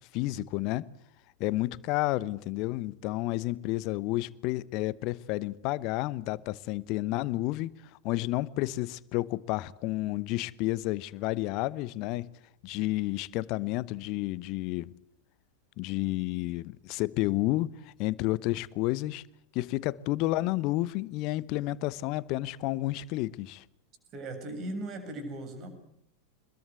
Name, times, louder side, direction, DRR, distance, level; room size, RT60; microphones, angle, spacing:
voice 1, 0.1-0.9 1.4-7.7 8.0-12.3 12.6-14.9 15.8-19.2 19.5-23.6, left 18 dB, 40° left, 0.9 m, -31 dB
voice 2, 24.1-25.7, right 1 dB, 30° right, 7.4 m, -38 dB
26.0 x 21.5 x 8.2 m
figure-of-eight pair, 90°, 0 cm